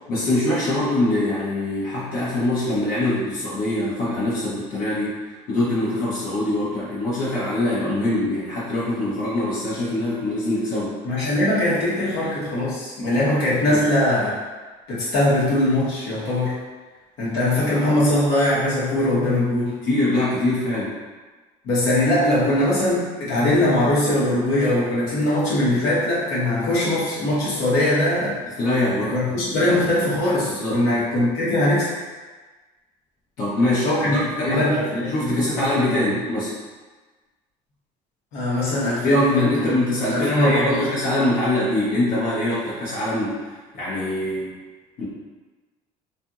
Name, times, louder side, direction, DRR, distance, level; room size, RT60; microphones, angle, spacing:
voice 1, 0.1-11.0 13.6-13.8 19.8-21.0 28.6-29.1 30.6-30.8 33.4-36.5 39.0-44.5 45.0-45.1, left 1 dB, 60° left, -8 dB, 0.8 m, -23 dB
voice 2, 11.0-14.3 14.9-16.6 17.2-19.8 21.6-28.4 29.0-31.9 33.8-35.9 38.3-40.9, left 1 dB, 80° left, -8 dB, 1.0 m, -21 dB
2.8 x 2.5 x 2.3 m, 1.3 s
cardioid pair, 120°, 16 cm